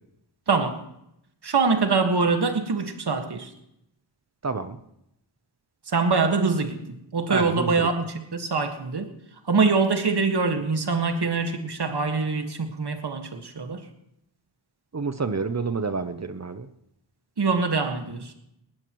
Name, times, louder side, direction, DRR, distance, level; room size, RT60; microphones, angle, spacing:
voice 1, 0.5-0.8 1.4-3.5 5.9-6.8 7.1-9.1 9.5-13.8 17.4-18.3, right 4 dB, 60° right, 6 dB, 1.8 m, -24 dB
voice 2, 4.4-4.8 7.3-7.9 14.9-16.7, right 4 dB, 35° right, 10 dB, 0.8 m, -28 dB
20.0 x 18.5 x 3.1 m, 0.79 s
wide cardioid pair, 115°, 45 cm